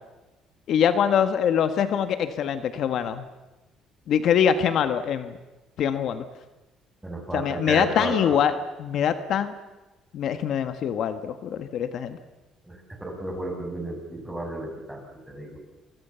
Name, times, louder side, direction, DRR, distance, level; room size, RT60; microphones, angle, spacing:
voice 1, 0.7-3.2 4.1-5.3 5.8-6.2 7.3-8.5 8.8-9.5 10.1-12.2, left 8 dB, 60° left, 9 dB, 1.5 m, -23 dB
voice 2, 7.0-8.4 12.6-15.6, right 1 dB, 5° right, 2 dB, 6.8 m, -33 dB
28.5 x 24.5 x 7.0 m, 1.1 s
cardioid pair, 120°, 0 cm